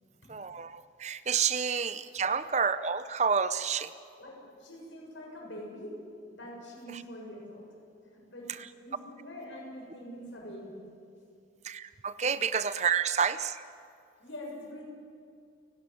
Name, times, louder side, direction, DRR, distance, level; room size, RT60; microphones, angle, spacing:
voice 1, 0.3-3.9 6.9-7.0 11.6-13.6, right 6 dB, 35° right, 13 dB, 0.6 m, -29 dB
voice 2, 4.2-6.0 6.3-7.7 8.0-8.6 8.8-10.9 12.2-12.3 14.2-14.8, equal, 80° left, -1 dB, 7.1 m, -44 dB
29.5 x 12.5 x 9.2 m, 2.3 s
head